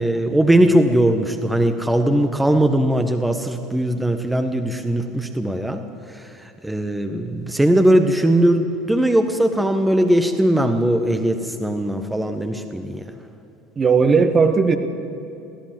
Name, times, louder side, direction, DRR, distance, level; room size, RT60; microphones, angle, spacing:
voice 1, 0.0-13.1, right 1 dB, 5° right, 7 dB, 1.3 m, -19 dB
voice 2, 13.8-14.8, right 5 dB, 30° right, 7 dB, 1.6 m, -16 dB
23.0 x 16.0 x 7.6 m, 2.8 s
figure-of-eight pair, 70°, 0 cm